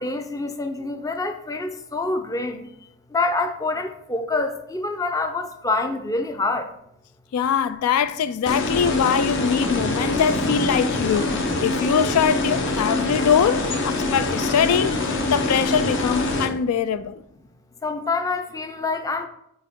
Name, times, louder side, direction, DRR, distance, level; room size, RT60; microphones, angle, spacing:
voice 1, 0.0-2.7 3.1-6.7 17.8-19.3, left 3 dB, 15° left, 0.5 m, -26 dB
voice 2, 7.3-11.3 11.6-15.0 15.3-17.2, left 7 dB, 75° left, 0.3 m, -22 dB
sound 1, 8.5-16.5, left 2 dB, 55° left, 0.9 m, -24 dB
Thunder, 9.4-13.8 14.6-15.1 15.4-15.5, equal, 30° left, 1.8 m, -39 dB
6.4 x 4.5 x 3.6 m
head